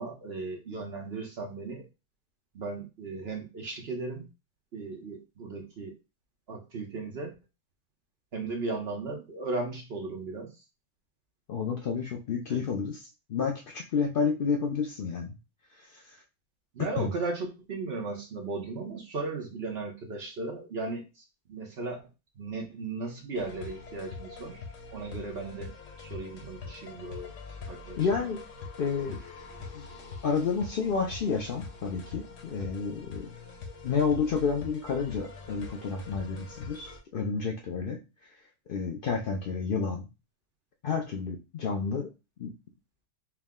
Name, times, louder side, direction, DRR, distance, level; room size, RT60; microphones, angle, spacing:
voice 1, 0.0-1.8 2.5-4.3 4.7-5.9 6.5-7.3 8.3-10.5 12.5-12.6 16.7-21.2 21.5-22.0 22.4-24.6 24.9-25.7 26.0-27.3 27.7-28.0 29.1-29.2, right 3 dB, 50° right, 1 dB, 0.9 m, -36 dB
voice 2, 11.5-13.0 13.3-15.3 15.8-16.2 16.8-17.1 28.0-28.4 28.8-29.2 29.7-29.9 30.2-33.3 33.8-38.0 38.7-40.1 40.8-42.1 42.4-42.5, left 5 dB, 80° left, 2 dB, 0.4 m, -30 dB
sound 1, 23.3-37.0, left 4 dB, 55° left, 1.2 m, -44 dB
4.7 x 2.1 x 3.6 m, 0.27 s
omnidirectional pair, 1.7 m